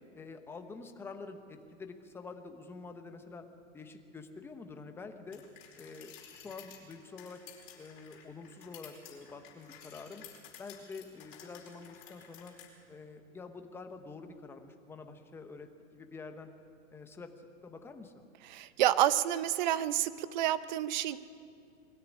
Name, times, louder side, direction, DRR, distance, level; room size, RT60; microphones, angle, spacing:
voice 1, 0.1-3.4 3.7-5.4 5.8-7.4 7.8-10.2 10.6-12.5 12.9-16.5 16.9-18.3, left 4 dB, 5° left, 6 dB, 0.9 m, -47 dB
sound 1, 5.3-12.7, left 9 dB, 40° left, 4.6 m, -53 dB
voice 2, 18.5-21.2, right 12 dB, 35° right, 15 dB, 0.7 m, -29 dB
21.0 x 13.5 x 10.0 m, 2.4 s
hypercardioid pair, 155°, 41 cm